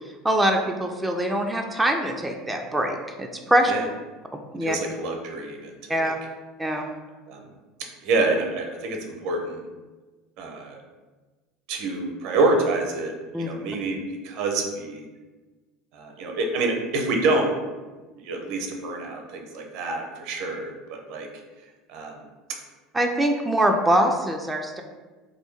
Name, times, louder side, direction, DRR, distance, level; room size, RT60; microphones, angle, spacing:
voice 1, 0.2-3.7 4.5-4.8 5.9-6.2 6.6-6.8 13.3-13.5 22.9-24.8, right 1 dB, 10° right, 2 dB, 0.4 m, -23 dB
voice 2, 4.6-6.1 7.3-7.5 8.0-9.6 10.4-10.8 11.7-15.0 15.9-17.5 18.2-21.3 21.9-22.3, right 2 dB, 65° right, 2 dB, 0.6 m, -27 dB
3.1 x 2.6 x 3.1 m, 1.3 s
hypercardioid pair, 80°, 0 cm